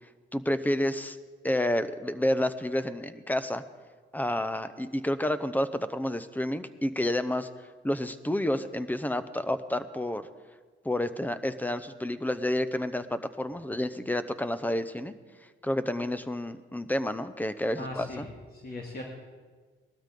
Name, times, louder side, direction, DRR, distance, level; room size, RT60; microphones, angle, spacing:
voice 1, 0.3-1.2 1.4-3.6 4.1-7.5 7.8-10.2 10.8-15.1 15.6-18.3, left 1 dB, 10° left, 12 dB, 0.8 m, -29 dB
voice 2, 17.8-19.0, left 2 dB, 50° left, -1 dB, 2.3 m, -39 dB
19.5 x 13.0 x 3.8 m, 1.4 s
cardioid pair, 90°, 20 cm